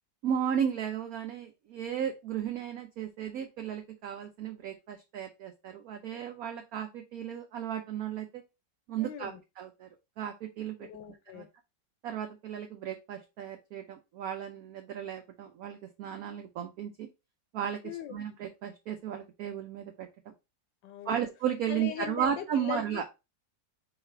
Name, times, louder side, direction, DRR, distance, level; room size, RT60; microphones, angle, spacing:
voice 1, 0.2-8.4 8.9-9.9 10.2-10.9 11.3-11.4 12.0-17.1 17.5-20.1 21.1-23.0, right 9 dB, 65° right, 0.9 m, -34 dB
voice 2, 9.0-9.4 10.8-11.5 17.8-18.2 20.8-21.3 21.7-23.0, left 10 dB, 80° left, 1.4 m, -40 dB
4.8 x 2.4 x 4.4 m
omnidirectional pair, 2.0 m